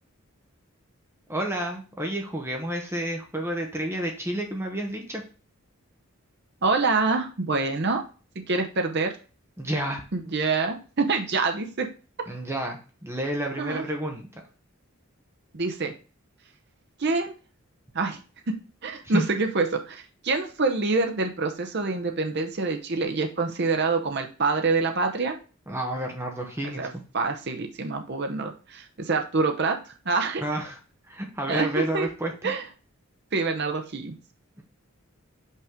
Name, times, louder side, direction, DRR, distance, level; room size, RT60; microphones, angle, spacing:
voice 1, 1.3-5.2 9.6-10.0 12.3-14.4 19.0-19.2 25.7-26.9 30.4-30.8 31.1-32.3, right 1 dB, 10° right, 2 dB, 1.0 m, -30 dB
voice 2, 6.6-8.0 8.5-9.1 10.1-11.9 13.6-13.8 15.5-15.9 17.0-17.3 17.9-18.2 18.5-18.6 18.8-25.4 26.6-26.9 27.1-29.8 30.0-30.4 31.5-32.1 32.4-32.6 33.3-34.1, right 3 dB, 50° right, 4 dB, 0.8 m, -26 dB
5.5 x 4.8 x 3.6 m, 0.36 s
head